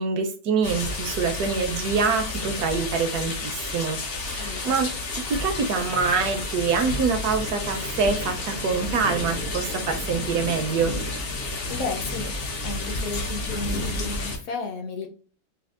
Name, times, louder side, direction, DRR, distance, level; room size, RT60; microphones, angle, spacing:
voice 1, 0.0-4.9 5.3-10.9, right 5 dB, 70° right, 6 dB, 1.0 m, -25 dB
sound 1, 0.6-14.4, left 2 dB, 85° left, 0.5 m, -31 dB
voice 2, 4.4-4.7 11.7-12.3 12.6-15.1, left 3 dB, 60° left, 3 dB, 1.0 m, -33 dB
4.3 x 2.3 x 2.4 m, 0.41 s
omnidirectional pair, 1.9 m